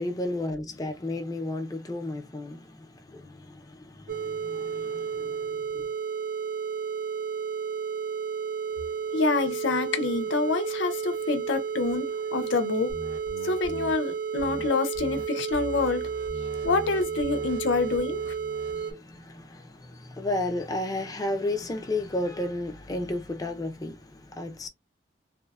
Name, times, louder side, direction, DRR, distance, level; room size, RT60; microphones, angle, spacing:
voice 1, 0.0-5.9 18.7-24.7, left 1 dB, 20° left, 0.5 m, -33 dB
sound 1, 4.1-18.9, right 6 dB, 45° right, 0.5 m, -32 dB
voice 2, 9.1-12.9 13.4-16.0 16.6-18.3, left 3 dB, 85° left, 0.5 m, -27 dB
sound 2, 12.9-13.9 14.4-14.7 14.9-15.2 15.5-18.8, right 1 dB, 75° right, 1.0 m, -42 dB
3.0 x 2.1 x 2.3 m
head